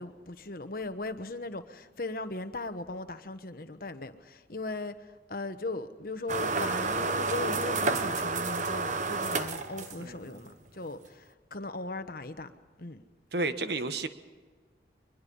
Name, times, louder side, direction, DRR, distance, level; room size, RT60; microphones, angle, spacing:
voice 1, 0.0-12.5 12.8-13.0, left 2 dB, 50° left, 1.2 m, -38 dB
sound 1, 6.3-10.3, right 3 dB, 40° right, 1.0 m, -30 dB
voice 2, 10.0-10.4 13.3-14.1, right 2 dB, 60° right, 1.3 m, -32 dB
24.0 x 21.5 x 5.5 m
head